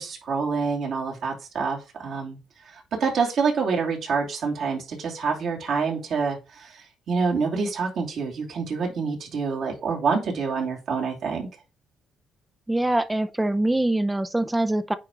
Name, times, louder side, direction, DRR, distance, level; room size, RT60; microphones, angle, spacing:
voice 1, 0.0-2.4 2.7-11.5, right 5 dB, 70° right, 2.8 m, -27 dB
voice 2, 12.7-15.0, right 1 dB, 10° right, 0.5 m, -24 dB
9.2 x 3.7 x 3.1 m
cardioid pair, 90°, 0 cm